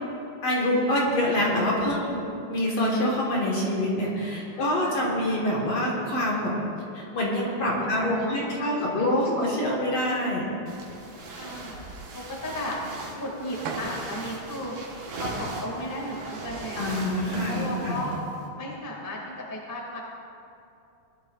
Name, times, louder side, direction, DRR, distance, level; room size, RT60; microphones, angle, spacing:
voice 1, 0.4-6.6 6.9-10.5 16.8-18.0, left 1 dB, 55° left, -4 dB, 2.3 m, -26 dB
voice 2, 4.4-5.0 8.0-9.3 11.3-11.8 12.1-12.8 13.1-14.7 15.2-17.1 17.5-18.2 18.6-20.0, left 1 dB, 10° left, -3 dB, 1.1 m, -35 dB
sound 1, 10.7-18.5, right 2 dB, 55° right, 2.1 m, -39 dB
sound 2, 13.7-14.3 14.9-15.0 16.8-16.9 17.2-18.3, right 4 dB, 85° right, 2.8 m, -38 dB
19.5 x 11.5 x 2.5 m, 2.6 s
omnidirectional pair, 4.1 m